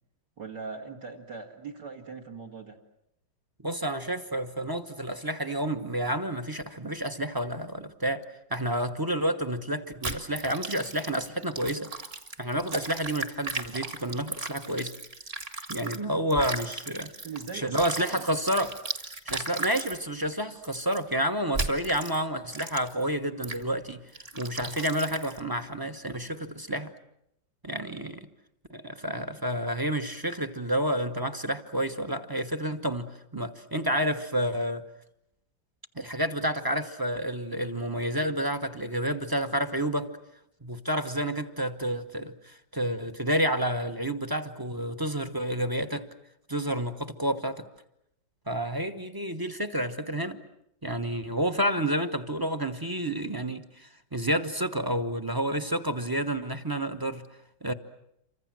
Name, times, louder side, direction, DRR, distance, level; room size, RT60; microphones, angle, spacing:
voice 1, 0.4-2.8 17.2-18.2 27.9-28.0, right 5 dB, 60° right, 1 dB, 2.8 m, -40 dB
voice 2, 3.6-8.2 8.5-11.9 12.4-14.9 15.7-17.1 17.5-18.7 19.2-24.0 24.4-26.9 27.6-28.3 28.7-34.8 35.9-40.1 40.6-46.1 46.5-47.6 48.5-50.4 50.8-57.3 57.6-57.7, right 1 dB, 15° right, 8 dB, 0.8 m, -30 dB
sound 1, 10.0-16.0 16.3-20.0 20.6-21.0 21.5-22.2 22.5-23.0 23.4-23.6 24.1-25.4, right 2 dB, 30° right, 2.0 m, -36 dB
28.5 x 25.0 x 7.6 m, 0.79 s
omnidirectional pair, 2.2 m